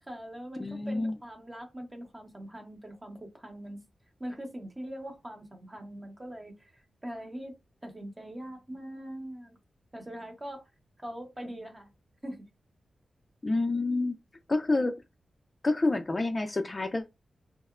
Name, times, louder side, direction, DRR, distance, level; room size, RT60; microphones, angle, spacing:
voice 1, 0.0-3.8 4.2-7.6 7.8-9.6 9.9-10.7 11.0-11.9 12.2-12.4, equal, 20° right, 0.8 m, -42 dB
voice 2, 0.6-1.2 13.4-14.2 14.5-15.0 15.6-17.1, left 2 dB, 30° left, 0.3 m, -28 dB
2.8 x 2.0 x 2.3 m
wide cardioid pair, 95°, 0 cm